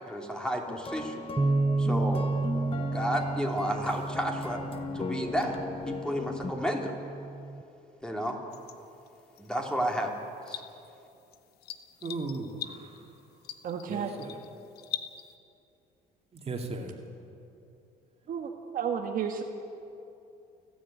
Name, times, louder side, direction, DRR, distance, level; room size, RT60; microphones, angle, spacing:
voice 1, 0.0-1.2 1.8-2.3 2.5-4.6 4.9-5.6 5.9-7.0 8.0-8.4 9.4-10.1 10.5-10.6, equal, 5° left, 1 dB, 2.8 m, -32 dB
sound 1, 0.7-6.5, left 3 dB, 35° left, 1.5 m, -37 dB
sound 2, 1.4-7.6, right 3 dB, 10° right, 0.4 m, -32 dB
sound 3, 8.5-15.4, left 10 dB, 70° left, 1.0 m, -44 dB
voice 2, 12.0-13.1 13.9-14.4 16.3-17.0, right 3 dB, 35° right, 2 dB, 2.5 m, -37 dB
voice 3, 13.6-14.1 18.3-19.4, right 7 dB, 55° right, 3 dB, 1.4 m, -32 dB
29.0 x 10.0 x 8.7 m, 2.7 s
cardioid pair, 110°, 17 cm